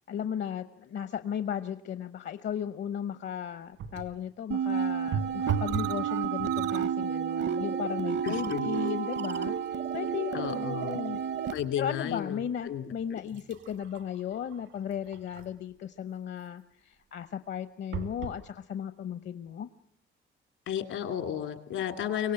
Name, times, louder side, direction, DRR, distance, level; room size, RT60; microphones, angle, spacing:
voice 1, 0.1-11.2 11.8-19.7, left 9 dB, 65° left, 11 dB, 0.9 m, -36 dB
sound 1, 3.8-4.2 5.1-6.0 6.4-6.9 7.6-7.8 8.1-11.7 12.2-12.3 13.0-15.7 17.9-18.4 19.1-19.2 19.5-19.6, right 7 dB, 85° right, 2.6 m, -39 dB
sound 2, 4.5-11.5, right 8 dB, 60° right, 0.9 m, -31 dB
voice 2, 8.2-8.7 10.3-11.0 11.5-12.8 13.1-13.2 20.7-22.3, left 9 dB, 80° left, 6 dB, 2.5 m, -33 dB
24.0 x 18.0 x 7.7 m, 0.71 s
cardioid pair, 90°, 20 cm